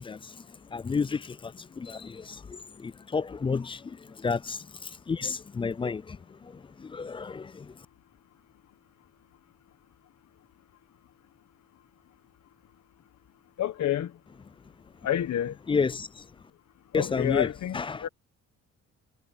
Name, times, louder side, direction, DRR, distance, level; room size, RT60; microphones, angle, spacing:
voice 1, 0.0-7.9 15.7-16.3 16.9-18.1, left 5 dB, 20° left, 0.3 m, -32 dB
voice 2, 13.6-14.1 15.0-15.5 16.9-18.1, left 11 dB, 65° left, 1.4 m, -29 dB
cardioid pair, 90°, 30 cm